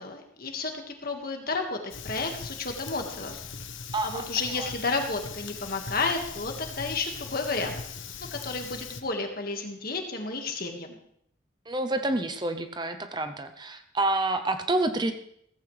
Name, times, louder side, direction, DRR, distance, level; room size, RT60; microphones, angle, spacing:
voice 1, 0.0-3.4 4.0-7.7 8.3-11.0, left 3 dB, 50° left, 3 dB, 1.8 m, -32 dB
Fire, 1.9-9.0, left 5 dB, 75° left, 1.0 m, -40 dB
voice 2, 3.9-4.3 4.6-4.7 11.7-15.1, right 2 dB, 20° right, 8 dB, 0.7 m, -28 dB
16.0 x 14.5 x 3.4 m, 0.70 s
head